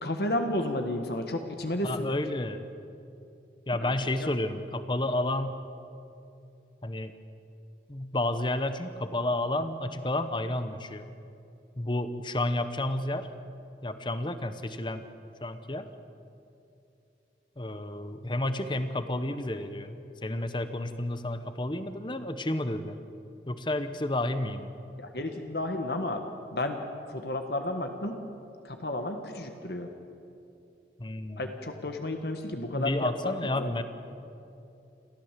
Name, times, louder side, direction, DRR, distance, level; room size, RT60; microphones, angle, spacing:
voice 1, 0.0-2.1 3.8-3.9 4.2-4.3 25.0-26.2 26.5-26.8 27.1-28.2 28.6-29.9 31.4-33.7, left 1 dB, 65° left, 5 dB, 1.5 m, -32 dB
voice 2, 1.8-2.6 3.7-5.6 6.8-7.1 7.9-11.1 11.8-13.3 13.8-15.1 15.4-15.9 17.6-19.9 20.2-23.0 23.5-24.7 31.0-31.6 32.7-33.8, left 1 dB, 25° left, 10 dB, 1.0 m, -31 dB
28.0 x 14.0 x 7.5 m, 2.7 s
head